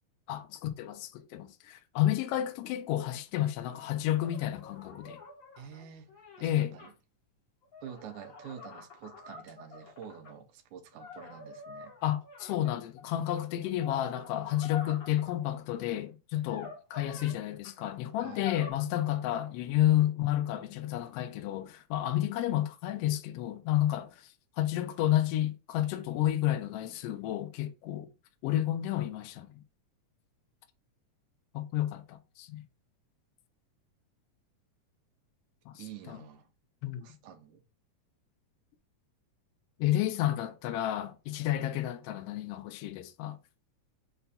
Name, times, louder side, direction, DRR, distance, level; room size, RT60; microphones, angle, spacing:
voice 1, 0.3-5.2 6.4-6.7 12.0-28.1 28.4-29.6 31.5-32.6 35.7-36.2 36.8-37.1 39.8-43.4, left 13 dB, 85° left, 1.4 m, -31 dB
sound 1, 4.2-6.9 7.6-10.3 10.9-13.0 13.6-15.4 16.4-17.4 17.6-17.7 18.2-18.7, left 4 dB, 65° left, 0.9 m, -47 dB
voice 2, 5.6-6.9 7.8-11.9 18.2-18.5 35.8-36.5 37.0-37.6, right 8 dB, 80° right, 2.1 m, -48 dB
5.5 x 2.2 x 4.1 m
omnidirectional pair, 3.3 m